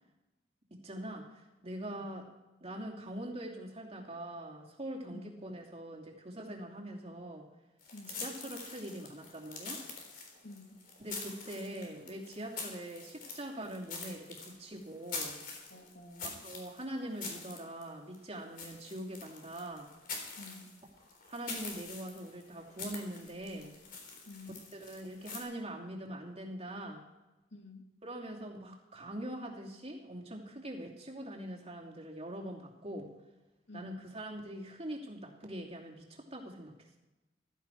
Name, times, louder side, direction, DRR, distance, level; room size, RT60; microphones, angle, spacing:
voice 1, 0.8-2.2 2.6-7.5 8.2-9.8 11.0-15.4 16.2-19.9 21.3-23.7 24.7-27.0 28.0-33.1 33.7-36.7, right 1 dB, 35° right, -1 dB, 2.7 m, -43 dB
sound 1, 7.8-25.4, left 4 dB, 55° left, 3.8 m, -45 dB
voice 2, 7.9-8.2 10.4-10.8 15.7-16.4 20.4-20.8 24.3-24.6 27.5-27.9 33.7-34.0, left 2 dB, 85° left, 3 dB, 2.4 m, -50 dB
15.5 x 14.0 x 4.6 m, 1.0 s
head